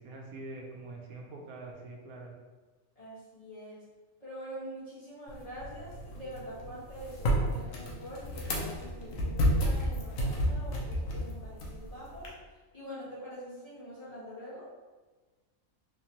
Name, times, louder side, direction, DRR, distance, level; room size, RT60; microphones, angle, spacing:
voice 1, 0.0-2.3, right 2 dB, 85° right, 0 dB, 1.1 m, -44 dB
voice 2, 2.9-3.8 4.2-12.3 12.7-14.7, equal, 25° left, -10 dB, 1.3 m, -45 dB
sound 1, 5.3-12.3, equal, 75° left, 1.1 m, -32 dB
3.5 x 3.0 x 2.8 m, 1.3 s
omnidirectional pair, 1.5 m